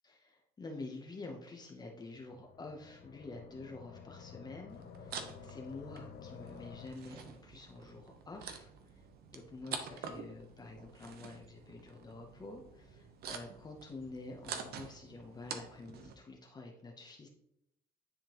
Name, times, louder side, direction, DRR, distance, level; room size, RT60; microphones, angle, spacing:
voice 1, 0.0-9.0 9.3-17.3, left 3 dB, 25° left, 2 dB, 0.8 m, -48 dB
sound 1, 2.0-6.9, left 7 dB, 70° left, 0.7 m, -52 dB
sound 2, 4.7-16.1, right 6 dB, 65° right, 0.9 m, -48 dB
10.0 x 3.6 x 3.0 m, 0.80 s
cardioid pair, 110°, 17 cm